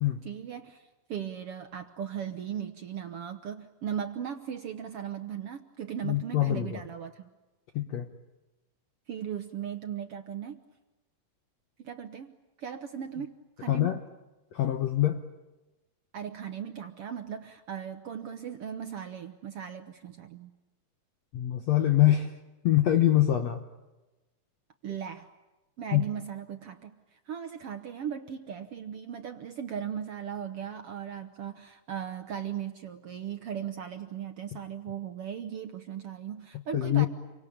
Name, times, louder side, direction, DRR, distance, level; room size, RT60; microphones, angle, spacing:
voice 1, 0.2-7.3 9.1-10.6 11.8-14.0 16.1-20.5 24.8-25.3 25.8-37.1, right 8 dB, 70° right, 7 dB, 1.4 m, -38 dB
voice 2, 6.0-6.8 7.8-8.1 13.7-14.0 14.5-15.2 21.3-22.4 22.6-23.6 25.9-26.0 36.7-37.1, left 13 dB, 65° left, 7 dB, 1.9 m, -24 dB
28.5 x 24.5 x 8.6 m, 1.1 s
omnidirectional pair, 4.0 m